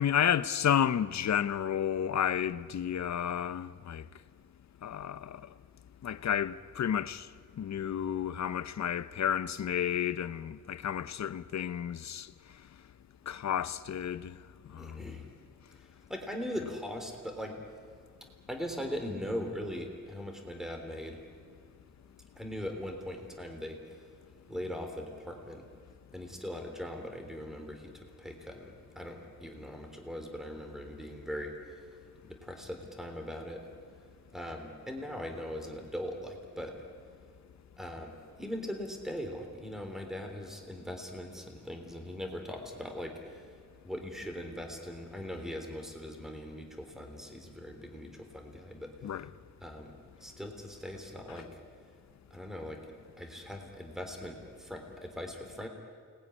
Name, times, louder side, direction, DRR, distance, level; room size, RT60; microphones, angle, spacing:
voice 1, 0.0-4.1 4.8-5.4 6.0-7.3 7.6-12.3 13.3-14.4 14.7-15.0 49.0-49.3, left 9 dB, 70° left, 0.9 m, -31 dB
voice 2, 14.8-15.2 15.7-17.6 18.5-21.2 22.3-24.1 24.5-25.7 26.1-31.9 32.2-33.7 34.3-36.9 37.8-49.2 49.6-51.5 52.3-55.7, equal, ahead, 3.4 m, -40 dB
28.5 x 20.5 x 10.0 m
wide cardioid pair, 155°, 29 cm